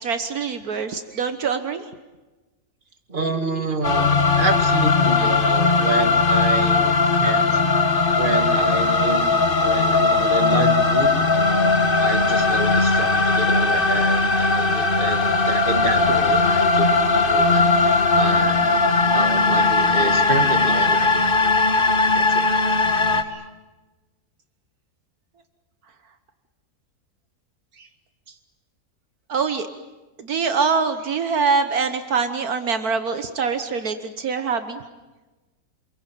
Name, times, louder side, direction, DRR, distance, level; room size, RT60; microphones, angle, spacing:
voice 1, 0.0-1.8 23.3-23.4 27.8-27.9 29.3-29.7 30.2-34.8, right 5 dB, 70° right, 9 dB, 1.7 m, -24 dB
voice 2, 3.1-4.1 4.4-7.7 8.1-18.8 19.1-21.2 22.1-22.5, right 3 dB, 30° right, 6 dB, 2.3 m, -28 dB
sound 1, 3.8-23.2, left 3 dB, 35° left, 1.7 m, -19 dB
28.5 x 22.0 x 9.1 m, 1.1 s
omnidirectional pair, 1.7 m